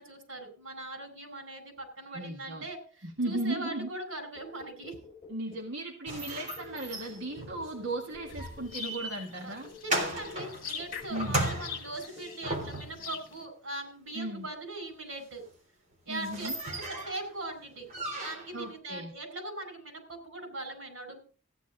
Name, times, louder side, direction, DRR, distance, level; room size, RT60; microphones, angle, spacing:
voice 1, 0.0-5.0 7.3-7.5 9.4-9.6 9.8-15.5 16.0-17.9 18.2-21.2, right 2 dB, 85° right, 6 dB, 4.8 m, -41 dB
voice 2, 2.1-2.6 3.0-3.9 5.3-9.7 11.1-11.5 14.1-14.5 16.1-16.5 18.5-19.1, right 1 dB, 65° right, 0 dB, 1.7 m, -36 dB
sound 1, 4.3-5.8 6.3-9.1 9.6-9.9 10.3-10.6 10.9-11.2 11.5-11.8 12.2-12.4, left 4 dB, 30° left, 5.7 m, -50 dB
sound 2, 6.1-13.1 15.5-15.6 15.9-17.2 17.9-18.6, right 1 dB, 40° right, 3.6 m, -36 dB
sound 3, 8.3-13.4, left 8 dB, 45° left, 1.6 m, -44 dB
15.0 x 10.0 x 3.9 m, 0.39 s
head